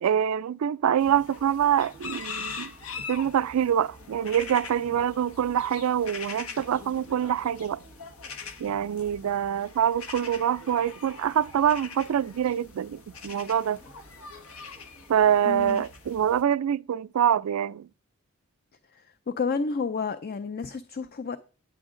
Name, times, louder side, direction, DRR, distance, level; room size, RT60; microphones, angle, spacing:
voice 1, 0.0-7.8 8.6-13.8 15.1-17.9, right 9 dB, 90° right, 0.3 m, -25 dB
sound 1, 1.0-16.4, left 5 dB, 80° left, 1.3 m, -42 dB
voice 2, 15.5-15.8 19.3-21.4, left 5 dB, 45° left, 0.5 m, -30 dB
9.6 x 7.9 x 3.7 m
head